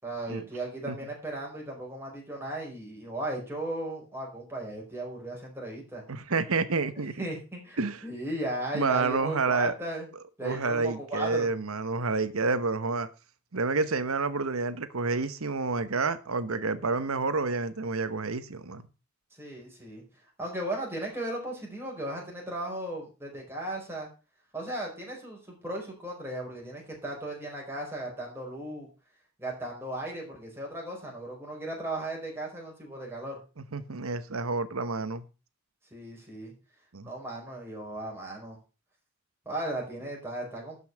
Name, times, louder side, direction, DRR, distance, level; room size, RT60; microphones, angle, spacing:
voice 1, 0.0-6.0 6.9-10.1 10.4-11.5 19.3-20.0 20.4-24.1 24.5-28.9 29.4-33.4 35.9-36.5 37.0-38.6 39.4-40.8, right 1 dB, 10° right, 4.8 m, -36 dB
voice 2, 6.1-7.2 7.8-8.0 8.7-9.7 10.4-13.1 13.5-18.8 33.7-35.2 36.9-37.1, right 4 dB, 75° right, 1.0 m, -29 dB
12.0 x 5.6 x 6.1 m
head